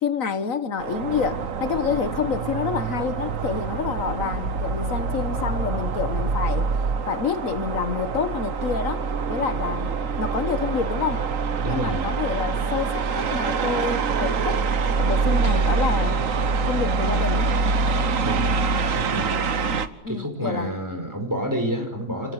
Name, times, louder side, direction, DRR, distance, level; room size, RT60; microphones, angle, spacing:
voice 1, 0.0-6.7 7.1-11.2 11.7-14.7 15.0-16.2 16.6-17.5 20.0-20.8, left 6 dB, 75° left, 1.7 m, -28 dB
sound 1, 0.8-19.9, right 4 dB, 75° right, 1.6 m, -25 dB
voice 2, 11.6-12.1 18.2-19.4 20.1-22.3, equal, 15° right, 5.3 m, -29 dB
28.0 x 17.5 x 8.1 m
omnidirectional pair, 1.4 m